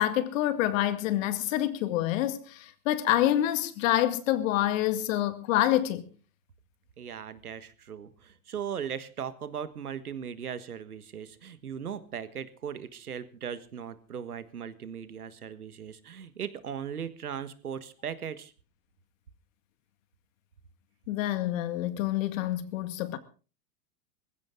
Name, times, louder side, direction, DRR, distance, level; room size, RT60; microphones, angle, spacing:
voice 1, 0.0-6.1 21.1-23.2, left 13 dB, 60° left, 2.1 m, -27 dB
voice 2, 7.0-18.5, right 8 dB, 90° right, 1.6 m, -38 dB
20.0 x 15.5 x 3.8 m
hypercardioid pair, 100°, 43 cm